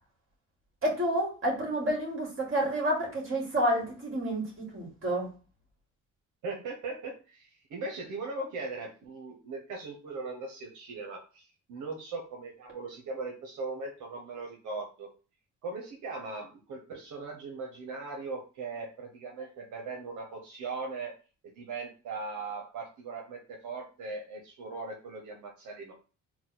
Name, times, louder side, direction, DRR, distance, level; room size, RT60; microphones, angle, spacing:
voice 1, 0.8-5.3, right 1 dB, 45° right, -1 dB, 2.3 m, -29 dB
voice 2, 6.4-15.1 15.6-21.1 21.6-25.9, right 3 dB, 80° right, 1 dB, 0.9 m, -39 dB
4.0 x 2.3 x 4.2 m, 0.35 s
cardioid pair, 90°, 30 cm